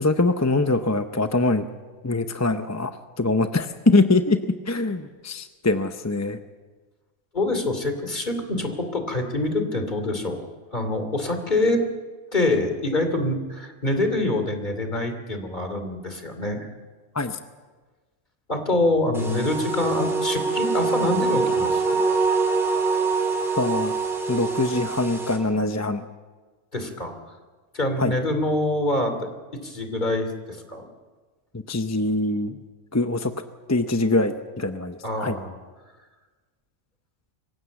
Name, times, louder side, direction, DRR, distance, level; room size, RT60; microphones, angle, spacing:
voice 1, 0.0-1.7 2.0-6.4 17.1-17.4 23.6-23.9 24.3-26.0 28.0-28.1 31.7-32.6 32.9-33.3 33.7-35.4, left 2 dB, 15° left, 8 dB, 0.6 m, -23 dB
voice 2, 7.3-11.8 12.3-16.7 18.5-22.0 26.7-27.2 27.7-29.3 29.6-30.9 35.0-35.6, left 2 dB, 35° left, 7 dB, 2.9 m, -25 dB
sound 1, 19.1-25.4, right 4 dB, ahead, 3.9 m, -24 dB
25.0 x 16.0 x 8.2 m, 1.3 s
omnidirectional pair, 1.3 m